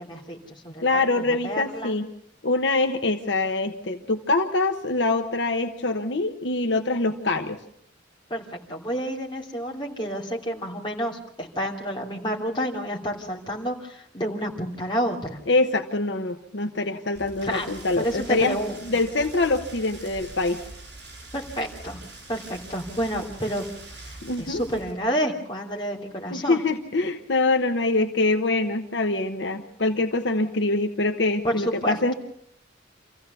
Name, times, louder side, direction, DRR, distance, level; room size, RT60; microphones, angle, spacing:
voice 1, 0.0-2.0 8.3-8.4 8.7-15.4 17.4-17.7 18.0-18.8 21.3-22.0 22.3-23.6 24.0-26.6 31.4-32.1, equal, 25° left, -1 dB, 2.9 m, -29 dB
voice 2, 0.8-2.1 2.4-7.6 15.5-18.6 18.8-20.6 24.2-24.6 26.3-32.1, left 2 dB, 65° left, 5 dB, 1.1 m, -24 dB
Rain, 17.1-24.9, right 2 dB, 65° right, 7.6 m, -43 dB
26.5 x 15.5 x 6.9 m, 0.70 s
head